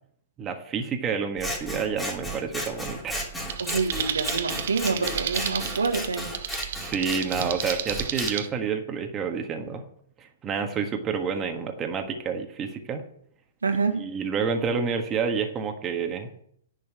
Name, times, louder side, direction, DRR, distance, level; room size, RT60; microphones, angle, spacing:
voice 1, 0.4-3.3 6.8-9.8 10.2-13.0 14.0-16.4, right 6 dB, 25° right, 1.5 m, -29 dB
Scissors, 1.4-8.3, equal, 10° left, 3.0 m, -34 dB
sound 1, 3.5-8.5, right 9 dB, 60° right, 1.0 m, -33 dB
voice 2, 3.6-6.3 13.6-14.1, right 4 dB, 85° right, 1.4 m, -27 dB
10.5 x 5.6 x 7.9 m
hypercardioid pair, 120°, 0 cm